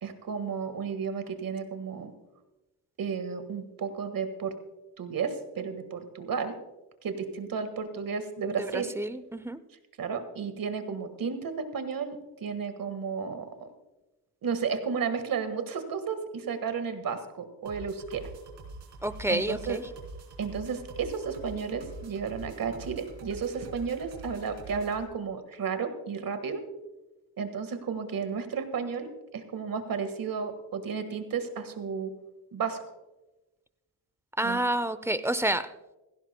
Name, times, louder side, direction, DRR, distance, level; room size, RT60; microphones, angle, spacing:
voice 1, 0.0-2.1 3.0-4.5 5.0-6.5 7.0-8.9 10.0-13.7 14.4-18.3 19.3-19.8 20.4-26.6 27.4-32.1 32.5-32.8 34.4-34.6, right 6 dB, 55° right, 9 dB, 1.7 m, -33 dB
voice 2, 8.4-9.6 19.0-19.9 34.4-35.7, right 1 dB, 5° right, 14 dB, 0.6 m, -29 dB
sound 1, 17.7-25.0, right 2 dB, 75° right, 3.3 m, -45 dB
16.5 x 16.0 x 2.2 m, 1.1 s
cardioid pair, 75°, 42 cm